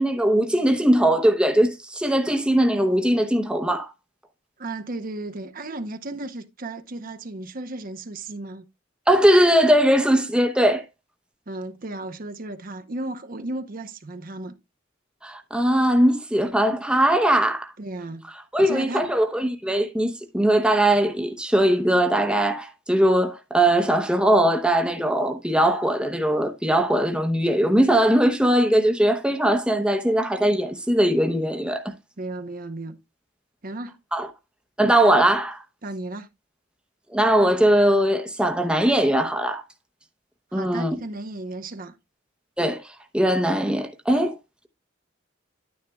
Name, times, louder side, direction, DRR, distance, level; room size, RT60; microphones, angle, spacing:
voice 1, 0.0-3.9 9.1-10.8 15.2-17.7 18.5-31.8 34.1-34.3 34.8-35.6 37.1-39.6 40.5-40.9 42.6-42.8 43.1-44.3, right 1 dB, 5° right, 0.8 m, -20 dB
voice 2, 4.6-8.7 11.5-14.5 17.8-18.3 18.6-19.0 32.2-33.0 33.6-34.0 35.8-36.3 40.5-41.9, right 2 dB, 45° right, 0.8 m, -34 dB
11.0 x 9.5 x 2.3 m
head